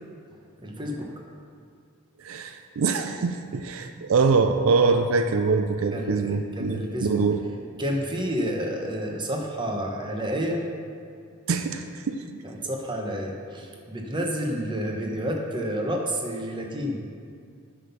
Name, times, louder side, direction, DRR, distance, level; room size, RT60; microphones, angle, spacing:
voice 1, 0.6-1.1 5.9-7.2 7.8-10.6 12.4-17.0, equal, 20° right, 1 dB, 1.0 m, -30 dB
voice 2, 2.2-7.4 11.5-12.2, right 4 dB, 75° right, 7 dB, 0.4 m, -24 dB
9.3 x 5.8 x 5.7 m, 2.2 s
head